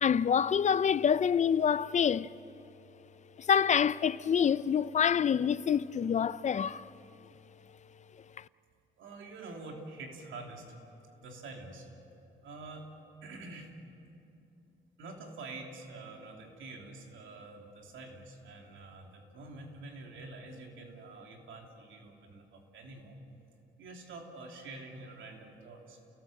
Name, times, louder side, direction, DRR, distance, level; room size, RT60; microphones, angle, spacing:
voice 1, 0.0-2.3 3.4-6.9 8.4-8.5, left 7 dB, 35° left, 0.5 m, -27 dB
voice 2, 9.0-10.8 11.2-11.9 12.4-12.9 13.2-13.7 15.0-23.2 23.8-26.0, right 3 dB, 80° right, 3.2 m, -47 dB
28.5 x 18.0 x 7.8 m
cardioid pair, 90°, 20 cm